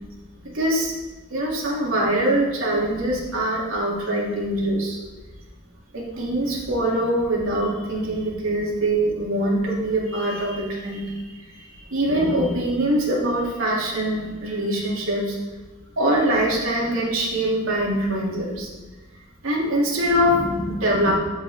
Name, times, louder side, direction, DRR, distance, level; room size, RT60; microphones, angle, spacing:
voice 1, 0.4-0.9 1.3-5.0 5.9-15.4 16.0-18.7 19.4-21.1, right 1 dB, 85° right, -4 dB, 2.9 m, -23 dB
14.0 x 5.6 x 3.6 m, 1.2 s
head